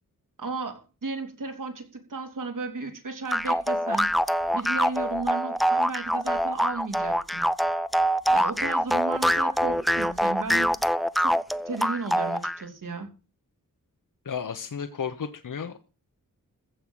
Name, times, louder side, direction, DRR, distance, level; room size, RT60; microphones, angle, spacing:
voice 1, 0.4-4.1 4.5-7.5 8.3-10.7 11.2-13.1, right 3 dB, 70° right, 5 dB, 3.4 m, -34 dB
sound 1, 3.3-12.6, equal, ahead, 0.6 m, -24 dB
voice 2, 14.2-15.9, left 7 dB, 65° left, 8 dB, 1.2 m, -33 dB
15.0 x 5.6 x 8.9 m, 0.33 s
wide cardioid pair, 90°, 34 cm